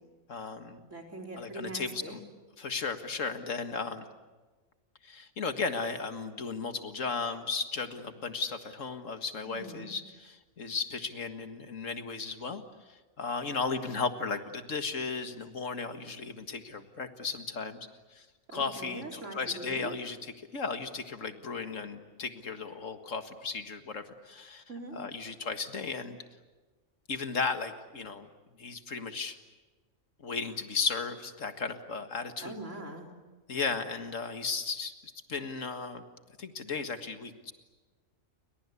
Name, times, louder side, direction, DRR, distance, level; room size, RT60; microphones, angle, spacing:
voice 1, 0.3-0.8 1.4-2.2 2.6-4.0 5.0-18.3 18.5-24.6 24.9-26.2 27.1-28.3 28.6-29.4 30.2-32.5 33.5-36.0 36.4-37.5, left 4 dB, 80° left, 8 dB, 2.1 m, -35 dB
voice 2, 0.9-2.2 9.5-9.9 18.5-19.9 24.7-25.0 32.4-33.1, right 2 dB, 75° right, 2 dB, 4.6 m, -42 dB
30.0 x 23.5 x 8.4 m, 1.3 s
omnidirectional pair, 1.3 m